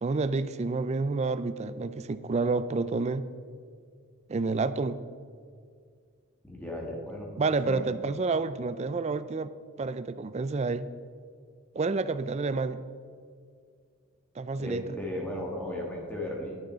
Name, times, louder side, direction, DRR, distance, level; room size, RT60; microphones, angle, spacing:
voice 1, 0.0-3.3 4.3-5.0 7.4-9.5 9.8-10.9 11.7-12.8 14.4-14.8, right 3 dB, 30° right, 13 dB, 0.3 m, -29 dB
voice 2, 6.4-7.3 7.6-7.8 14.6-16.6, left 1 dB, 5° left, -2 dB, 1.6 m, -35 dB
11.0 x 6.4 x 5.6 m, 2.1 s
head